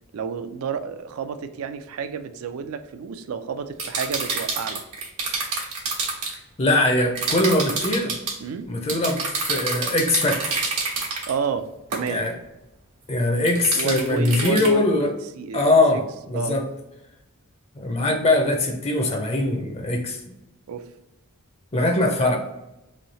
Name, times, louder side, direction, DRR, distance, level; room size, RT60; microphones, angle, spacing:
voice 1, 0.1-4.8 8.4-8.7 11.3-12.2 13.7-16.0 16.3-16.6 20.7-20.9, right 6 dB, 70° right, 10 dB, 0.4 m, -31 dB
sound 1, 3.8-6.3 7.2-8.4 8.9-11.3 11.9-12.1 13.5-14.7, right 4 dB, 90° right, 1.1 m, -27 dB
voice 2, 6.6-8.1 8.7-10.6 12.1-12.3 13.1-15.1 15.5-16.7 17.8-20.2 21.7-22.4, left 2 dB, 30° left, 3 dB, 0.5 m, -21 dB
3.2 x 2.7 x 4.0 m, 0.94 s
head